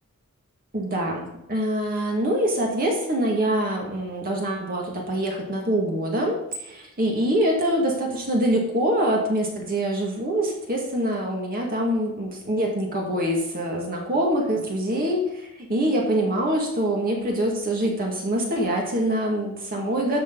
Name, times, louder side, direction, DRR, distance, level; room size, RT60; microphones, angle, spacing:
voice 1, 0.7-20.2, right 1 dB, 40° right, 0 dB, 2.2 m, -24 dB
13.0 x 7.1 x 4.0 m, 0.85 s
head